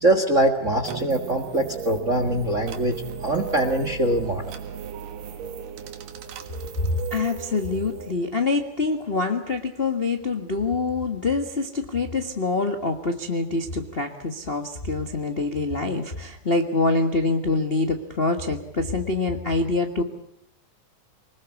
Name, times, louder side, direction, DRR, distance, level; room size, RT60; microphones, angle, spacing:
voice 1, 0.0-4.6, right 1 dB, 35° right, 8 dB, 1.2 m, -23 dB
sound 1, 0.8-8.1, right 8 dB, 90° right, 3.2 m, -36 dB
voice 2, 6.8-20.0, left 3 dB, 35° left, 4 dB, 0.9 m, -25 dB
25.0 x 20.0 x 8.4 m, 0.72 s
omnidirectional pair, 3.7 m